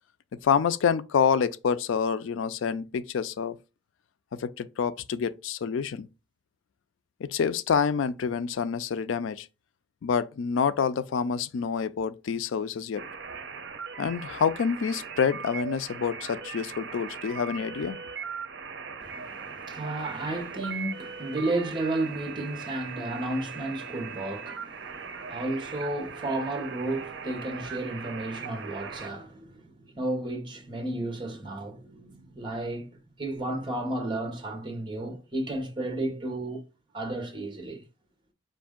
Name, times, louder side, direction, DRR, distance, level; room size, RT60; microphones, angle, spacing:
voice 1, 0.4-3.6 4.3-6.1 7.2-9.5 10.0-13.0 14.0-18.0, left 6 dB, 90° left, 0.4 m, -27 dB
sound 1, 13.0-29.1, right 6 dB, 65° right, 0.6 m, -39 dB
voice 2, 19.0-36.6 36.9-37.8, right 2 dB, 25° right, 1.0 m, -33 dB
5.1 x 2.6 x 3.6 m
head